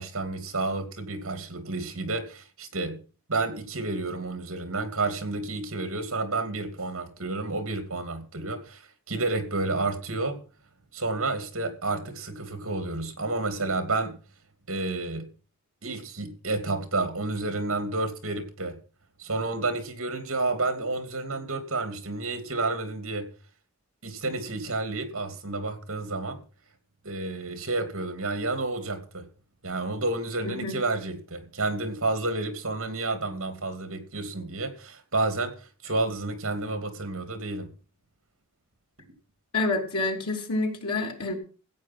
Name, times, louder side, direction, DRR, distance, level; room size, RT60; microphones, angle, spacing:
voice 1, 0.0-3.0 3.3-10.4 10.9-14.2 14.7-15.3 15.8-18.8 19.2-23.3 24.0-26.4 27.0-29.2 29.6-37.7, right 2 dB, 65° right, 2.8 m, -30 dB
voice 2, 30.4-30.7 39.5-41.4, left 2 dB, 80° left, 3.4 m, -28 dB
15.0 x 8.5 x 6.1 m
head